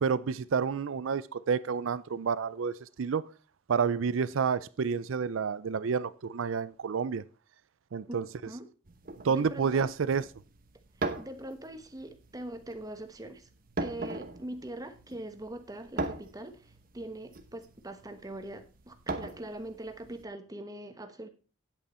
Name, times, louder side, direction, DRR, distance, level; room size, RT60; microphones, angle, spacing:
voice 1, 0.0-3.2 3.7-7.2 7.9-8.3 9.2-10.2, right 6 dB, 75° right, 0.5 m, -29 dB
sound 1, 8.9-20.2, right 2 dB, 45° right, 1.0 m, -40 dB
voice 2, 9.2-9.9 11.2-13.5 13.8-21.3, right 1 dB, 20° right, 1.0 m, -42 dB
9.0 x 8.3 x 4.3 m
head